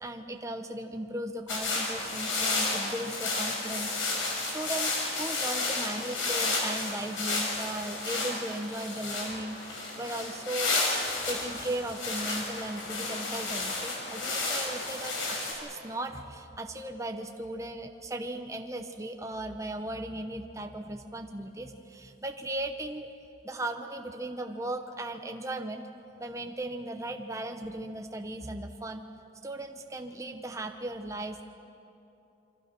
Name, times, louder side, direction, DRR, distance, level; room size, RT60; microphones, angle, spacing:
voice 1, 0.0-10.9 11.3-23.1 23.4-25.9 26.2-29.1 29.4-31.4, right 1 dB, 15° right, 5 dB, 0.8 m, -37 dB
sound 1, 1.5-15.5, left 3 dB, 90° left, 5.1 m, -32 dB
27.0 x 24.5 x 6.0 m, 2.9 s
head